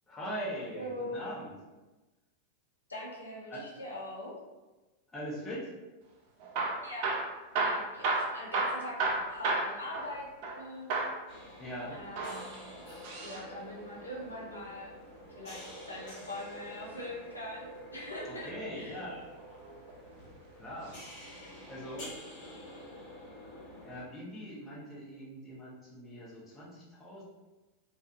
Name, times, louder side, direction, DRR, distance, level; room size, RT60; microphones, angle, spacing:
voice 1, 0.1-1.5 3.5-3.7 5.1-5.7 11.6-12.0 18.4-19.2 20.6-20.9 21.7-22.1 23.8-27.2, equal, 15° left, -7 dB, 0.9 m, -41 dB
voice 2, 0.7-1.3 2.9-4.4 6.8-7.1 7.6-10.3 10.6-10.9 11.9-12.5 13.2-14.9 15.4-19.0, left 1 dB, 80° left, -5 dB, 0.5 m, -42 dB
Hammer / Drill, 6.4-10.6 10.9-11.2 12.0-13.5 15.2-16.4 18.1-18.6 19.3-20.1 20.8-21.1 21.4-21.5 22.1-22.2, right 3 dB, 45° right, 0.4 m, -33 dB
sound 1, 11.3-24.0, equal, 40° left, 1.0 m, -48 dB
2.3 x 2.3 x 2.7 m, 1.1 s
figure-of-eight pair, 90°, 0 cm